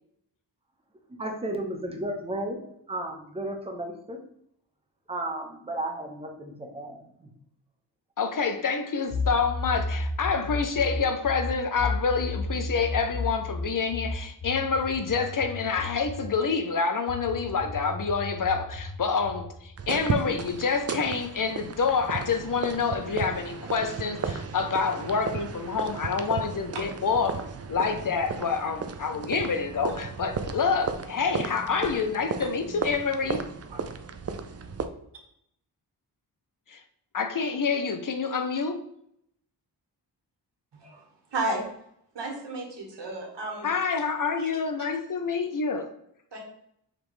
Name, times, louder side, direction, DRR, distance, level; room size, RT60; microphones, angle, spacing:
voice 1, 1.2-4.2 5.1-7.3, right 1 dB, 15° right, 0.8 m, -34 dB
voice 2, 8.2-33.4 36.7-36.8 37.1-38.8 43.6-45.9, left 5 dB, 45° left, 0.6 m, -27 dB
sound 1, 9.1-16.4 17.1-19.6, left 2 dB, 70° left, 1.0 m, -33 dB
sound 2, 19.8-34.9, right 5 dB, 35° right, 0.4 m, -35 dB
voice 3, 41.3-41.6 42.1-43.7 44.4-44.5 46.3-46.4, right 2 dB, 70° right, 1.5 m, -32 dB
5.2 x 3.1 x 3.1 m
cardioid pair, 65°, 44 cm